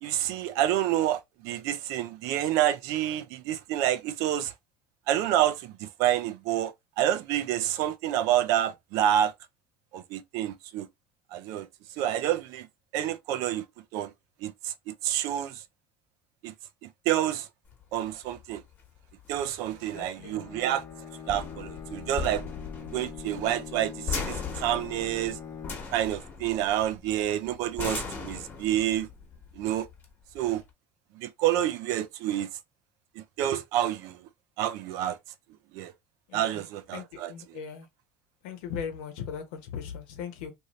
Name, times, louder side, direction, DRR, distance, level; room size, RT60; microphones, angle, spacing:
voice 1, 0.0-4.5 5.1-9.3 9.9-10.9 11.3-11.7 12.0-12.7 12.9-13.6 13.9-14.1 14.4-15.6 16.4-16.5 17.1-17.5 17.9-18.6 19.3-20.8 21.3-22.4 22.9-25.4 25.9-29.1 29.6-29.9 30.3-30.6 31.2-32.5 33.2-34.2 34.6-35.2 35.7-35.9 36.3-37.3, right 12 dB, 70° right, 0.5 m, -28 dB
sound 1, 17.7-30.7, left 5 dB, 35° left, 1.1 m, -39 dB
voice 2, 19.7-20.5 36.3-36.7 36.9-37.9 38.4-40.5, left 7 dB, 80° left, 0.9 m, -39 dB
Bowed string instrument, 20.1-26.1, left 7 dB, 50° left, 0.7 m, -43 dB
2.6 x 2.6 x 3.0 m
supercardioid pair, 110°, 6 cm